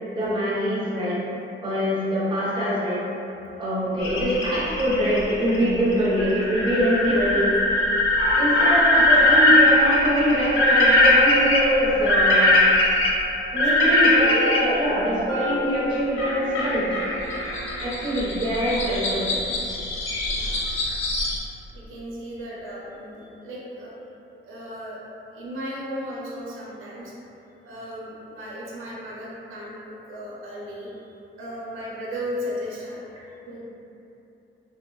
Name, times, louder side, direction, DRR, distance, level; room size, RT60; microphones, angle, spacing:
voice 1, 0.1-1.2 1.6-3.0 3.6-7.5 8.4-12.6 13.5-16.9 17.4-19.3 20.8-20.9, equal, 25° right, -8 dB, 0.6 m, -24 dB
sound 1, 4.0-14.6 16.2-21.4, left 1 dB, 75° left, 0.5 m, -21 dB
voice 2, 13.8-14.1 17.0-17.2 20.3-20.8 21.7-23.9 24.4-25.0 25.3-27.1 27.6-33.0 33.5-33.6, equal, 80° right, -6 dB, 0.6 m, -36 dB
Mallet percussion, 15.3-19.3, left 1 dB, 20° left, 0.4 m, -37 dB
3.2 x 2.0 x 2.3 m, 2.8 s
wide cardioid pair, 160°, 21 cm